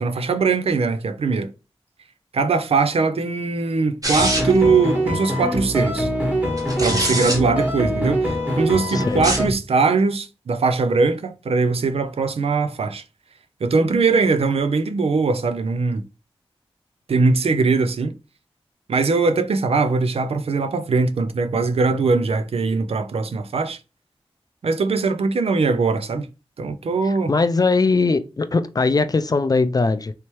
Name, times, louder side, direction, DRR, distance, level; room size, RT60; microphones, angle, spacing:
voice 1, 0.0-1.5 2.3-6.1 6.8-13.0 13.6-16.1 17.1-18.1 18.9-23.8 24.6-26.3 26.6-27.3, right 4 dB, 80° right, 0.4 m, -21 dB
sound 1, 4.0-4.7 6.6-7.4 9.1-9.5, right 1 dB, 35° right, 1.3 m, -24 dB
sound 2, 4.2-9.5, equal, 15° right, 1.4 m, -23 dB
voice 2, 8.9-9.2 27.0-30.1, left 3 dB, 40° left, 0.4 m, -20 dB
3.2 x 2.9 x 3.0 m
wide cardioid pair, 60°, 10 cm